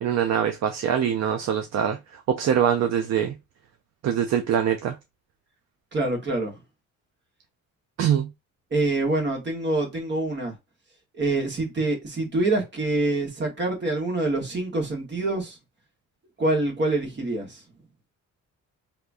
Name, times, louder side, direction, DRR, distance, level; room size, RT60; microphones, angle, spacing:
voice 1, 0.0-3.4 4.0-5.0 8.0-8.3, right 9 dB, 60° right, 0.5 m, -23 dB
voice 2, 5.9-6.6 8.7-10.5 11.1-15.6 16.4-17.6, right 2 dB, 35° right, 1.3 m, -26 dB
3.5 x 2.8 x 2.5 m
cardioid pair, 130°, 31 cm